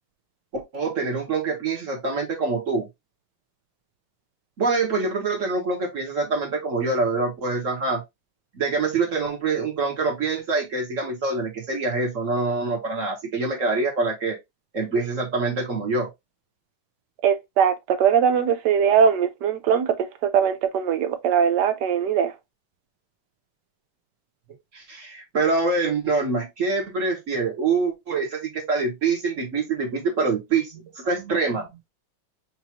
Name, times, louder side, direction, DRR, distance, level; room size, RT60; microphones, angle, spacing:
voice 1, 0.5-2.9 4.6-8.0 8.5-14.4 14.7-16.1 24.7-31.7, right 3 dB, 40° right, 1.4 m, -25 dB
voice 2, 17.2-22.3, right 7 dB, 70° right, 1.0 m, -21 dB
6.0 x 2.7 x 2.8 m
omnidirectional pair, 2.4 m